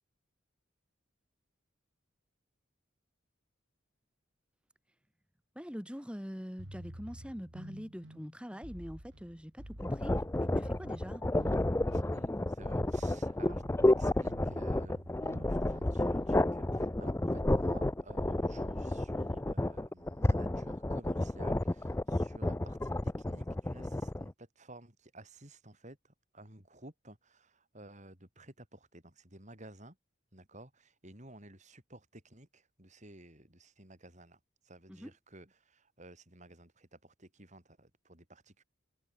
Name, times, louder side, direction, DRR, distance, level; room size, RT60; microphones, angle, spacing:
voice 1, 5.5-10.2 10.5-11.2 34.9-35.1, equal, 5° right, 4.7 m, -43 dB
sound 1, 6.6-16.4, equal, 60° right, 4.4 m, -49 dB
sound 2, 9.8-24.3, left 1 dB, 15° left, 0.4 m, -31 dB
voice 2, 11.9-30.0 30.3-38.6, right 1 dB, 35° right, 6.8 m, -54 dB
head